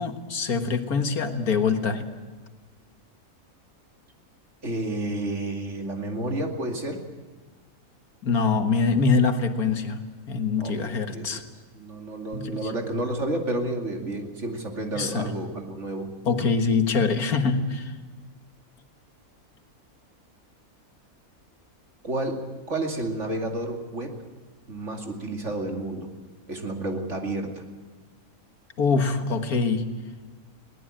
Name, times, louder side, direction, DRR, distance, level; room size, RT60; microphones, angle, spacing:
voice 1, 0.0-2.1 8.2-10.0 10.3-11.4 12.3-12.6 14.9-15.3 16.3-17.9 28.8-29.9, left 4 dB, 85° left, 7 dB, 2.1 m, -24 dB
voice 2, 4.6-7.0 10.6-11.4 11.7-16.1 22.0-22.4 22.7-24.2 24.7-26.1 26.5-27.6, right 2 dB, 50° right, 3 dB, 2.9 m, -30 dB
21.5 x 18.5 x 8.9 m, 1.4 s
omnidirectional pair, 1.5 m